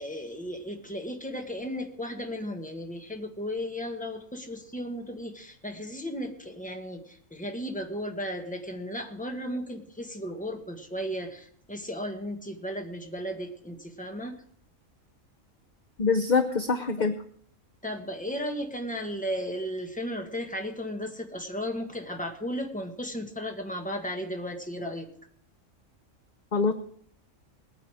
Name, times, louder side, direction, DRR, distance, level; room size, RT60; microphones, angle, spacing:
voice 1, 0.0-14.3 17.8-25.1, equal, 5° left, 3 dB, 1.4 m, -35 dB
voice 2, 16.0-17.1 26.5-26.7, left 4 dB, 40° left, 8 dB, 0.8 m, -24 dB
19.5 x 9.4 x 4.8 m, 0.64 s
omnidirectional pair, 1.4 m